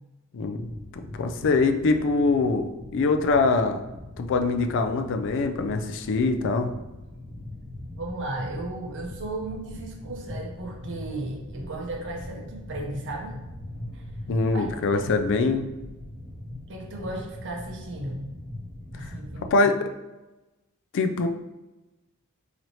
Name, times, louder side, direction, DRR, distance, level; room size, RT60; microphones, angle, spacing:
sound 1, 0.6-19.5, left 1 dB, 30° left, 1.4 m, -41 dB
voice 1, 1.2-3.8 4.2-6.7 14.3-15.7 19.0-19.1 19.5-19.9 20.9-21.3, left 3 dB, 55° left, 7 dB, 0.4 m, -23 dB
voice 2, 8.0-13.4 13.9-14.0 14.5-15.1 16.7-18.3 18.9-19.7, right 2 dB, 55° right, 0 dB, 0.8 m, -35 dB
4.0 x 3.1 x 2.9 m, 1.1 s
head